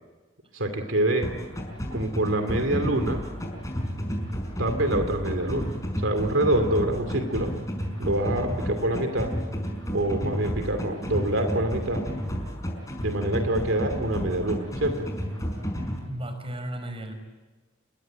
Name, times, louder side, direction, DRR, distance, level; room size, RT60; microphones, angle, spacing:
voice 1, 0.5-1.3 1.9-3.3 4.6-7.6 8.0-9.4 9.9-12.1 13.0-15.1, right 1 dB, 70° right, 7 dB, 2.7 m, -26 dB
sound 1, 1.2-16.0, equal, 15° left, 5.5 m, -31 dB
voice 2, 16.0-17.1, right 1 dB, 30° right, 7 dB, 5.0 m, -34 dB
28.0 x 22.5 x 9.0 m, 1.2 s
head